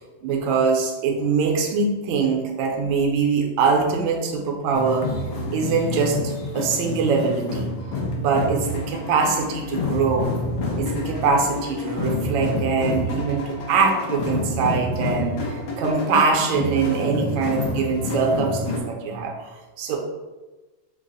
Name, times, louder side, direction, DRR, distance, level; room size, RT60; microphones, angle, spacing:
voice 1, 0.2-5.1 5.5-7.7 8.2-10.3 10.8-20.0, right 5 dB, 75° right, 1 dB, 1.3 m, -23 dB
sound 1, 4.7-18.8, left 2 dB, 75° left, 1.4 m, -28 dB
3.9 x 2.0 x 3.8 m, 1.2 s
omnidirectional pair, 2.3 m